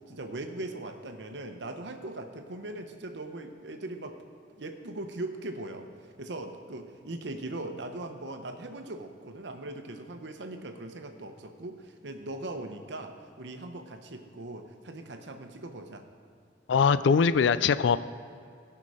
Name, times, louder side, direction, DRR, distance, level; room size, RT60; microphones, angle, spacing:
voice 1, 0.1-4.2 4.6-16.0, right 2 dB, 65° right, 6 dB, 0.9 m, -40 dB
voice 2, 16.7-18.0, left 6 dB, 70° left, 15 dB, 0.4 m, -22 dB
17.0 x 5.8 x 4.9 m, 2.4 s
head